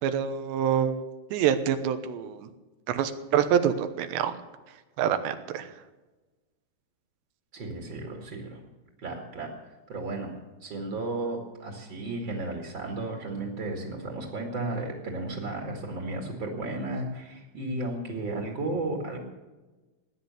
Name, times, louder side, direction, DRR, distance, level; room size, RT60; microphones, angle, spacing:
voice 1, 0.0-1.0 1.3-2.5 2.9-4.3 5.0-5.7, right 9 dB, 90° right, 9 dB, 3.2 m, -26 dB
voice 2, 7.5-8.6 9.0-9.5 9.9-10.3 10.6-19.2, right 2 dB, 40° right, 1 dB, 2.0 m, -34 dB
17.5 x 10.5 x 6.8 m, 1.2 s
omnidirectional pair, 4.9 m